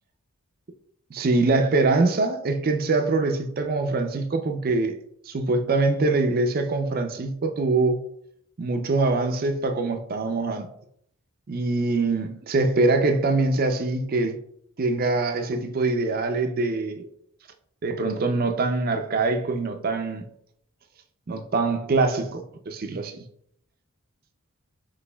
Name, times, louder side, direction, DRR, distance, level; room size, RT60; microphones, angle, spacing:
voice 1, 1.1-5.0 5.3-8.0 8.6-10.7 11.5-14.4 14.8-17.1 17.8-20.3 21.3-23.2, right 3 dB, 45° right, 0.4 m, -24 dB
6.0 x 3.1 x 2.2 m
head